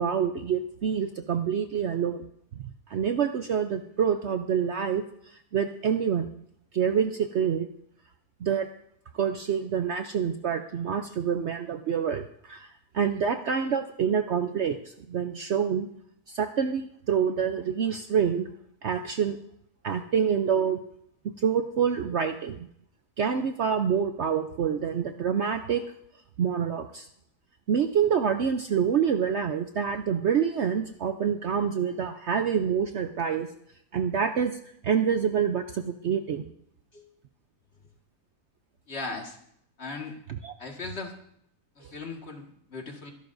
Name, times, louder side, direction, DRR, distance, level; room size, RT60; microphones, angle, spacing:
voice 1, 0.0-2.2 2.5-6.3 6.7-7.7 8.4-8.7 9.1-15.9 16.3-18.5 18.8-19.4 19.8-20.8 21.2-22.7 23.2-25.8 26.4-27.1 27.7-33.5 33.9-36.5 40.4-40.5 41.8-41.9, right 7 dB, 60° right, 7 dB, 0.8 m, -27 dB
voice 2, 38.9-39.4 39.8-40.2 40.6-41.1 41.8-43.1, left 3 dB, 45° left, 2 dB, 2.0 m, -38 dB
24.0 x 11.5 x 2.6 m, 0.70 s
omnidirectional pair, 1.6 m